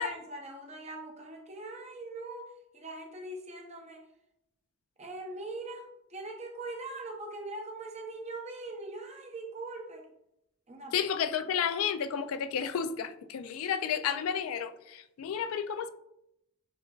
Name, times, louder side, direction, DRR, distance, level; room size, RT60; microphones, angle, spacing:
voice 1, 0.0-4.0 5.0-10.1 10.7-10.9, right 2 dB, 30° right, 0.6 m, -41 dB
voice 2, 10.9-15.9, left 7 dB, 75° left, 0.3 m, -31 dB
6.6 x 3.2 x 2.3 m
head